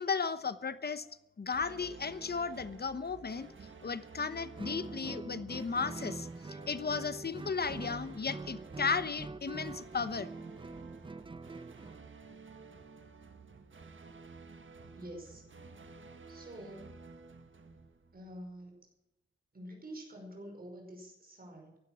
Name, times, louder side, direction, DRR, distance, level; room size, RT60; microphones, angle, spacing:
voice 1, 0.0-3.5 3.8-10.3, left 5 dB, 50° left, 14 dB, 1.0 m, -35 dB
sound 1, 1.5-18.6, right 4 dB, 75° right, 1.6 m, -53 dB
Guitar, 4.6-12.0, right 3 dB, 25° right, 0.6 m, -44 dB
voice 2, 15.0-15.5 16.3-17.0 18.1-18.9 19.5-21.8, right 1 dB, 45° right, 1 dB, 5.3 m, -47 dB
16.0 x 12.0 x 6.2 m, 0.93 s
wide cardioid pair, 110°, 21 cm